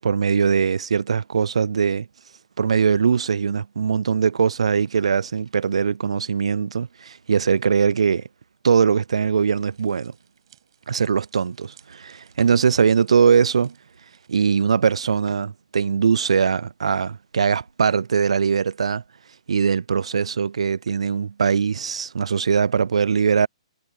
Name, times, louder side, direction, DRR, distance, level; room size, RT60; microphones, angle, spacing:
voice 1, 0.0-2.1 2.6-8.3 8.6-10.1 10.9-13.7 14.3-19.0 19.5-23.5, right 6 dB, 70° right, 0.5 m, -21 dB
sound 1, 4.5-12.7 13.5-16.0 16.5-20.1, right 3 dB, 85° right, 3.1 m, -55 dB
sound 2, 9.5-14.6, right 10 dB, 50° right, 7.4 m, -60 dB
figure-of-eight pair, 130°, 3 cm